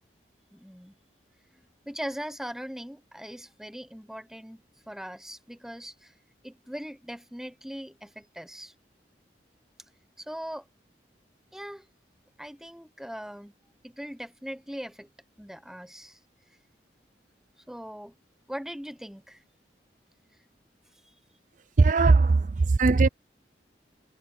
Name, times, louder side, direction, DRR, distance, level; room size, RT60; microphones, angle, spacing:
voice 1, 0.5-0.9 1.9-6.1 6.4-8.7 10.2-10.7 11.5-11.9 12.4-13.5 13.8-15.1 15.4-16.2 17.7-18.1 18.5-19.4, equal, 5° right, 0.9 m, -40 dB
voice 2, 21.8-23.1, right 3 dB, 45° right, 0.4 m, -19 dB
head